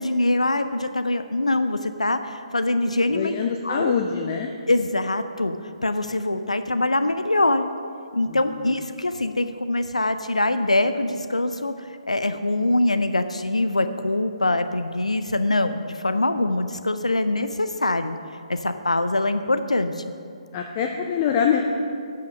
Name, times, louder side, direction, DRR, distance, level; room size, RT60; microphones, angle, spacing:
voice 1, 0.0-3.3 3.6-3.9 4.7-5.6 5.8-7.6 8.1-18.2 18.5-20.0, left 2 dB, 80° left, 9 dB, 0.4 m, -23 dB
voice 2, 3.1-4.5 8.3-8.8 20.5-21.6, left 7 dB, 25° left, 3 dB, 0.5 m, -25 dB
11.0 x 5.7 x 6.4 m, 2.4 s
figure-of-eight pair, 135°, 3 cm